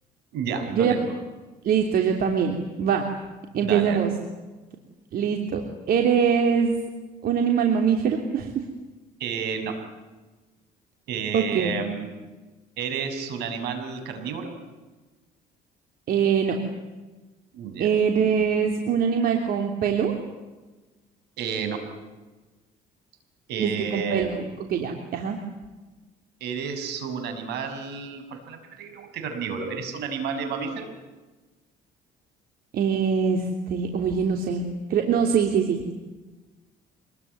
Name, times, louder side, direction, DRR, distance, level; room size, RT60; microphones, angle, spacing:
voice 1, 0.3-1.1 3.6-4.0 9.2-9.8 11.1-12.1 12.8-14.5 17.5-17.9 21.4-21.8 23.5-24.3 26.4-30.9, right 6 dB, 80° right, 7 dB, 6.2 m, -31 dB
voice 2, 1.6-3.1 3.5-4.1 5.1-5.6 5.9-6.7 7.2-8.6 11.3-11.7 16.1-16.6 17.8-20.1 23.6-24.4 24.7-25.4 32.7-35.9, right 7 dB, 65° right, 3 dB, 3.2 m, -23 dB
26.5 x 21.0 x 9.5 m, 1.2 s
cardioid pair, 110°, 17 cm